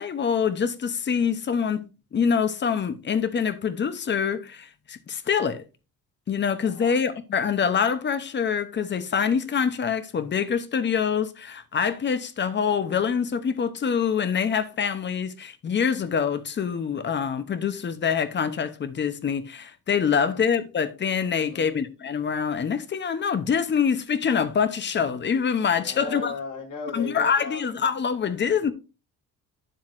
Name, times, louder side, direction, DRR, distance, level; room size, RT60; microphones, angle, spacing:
voice 1, 0.0-1.8 2.1-5.6 6.3-26.3 26.9-28.7, left 7 dB, 30° left, 0.8 m, -25 dB
voice 2, 6.6-7.0 20.2-20.4 21.3-21.7 25.7-27.6, left 4 dB, 60° left, 3.3 m, -36 dB
9.3 x 7.5 x 2.5 m
cardioid pair, 165°, 35 cm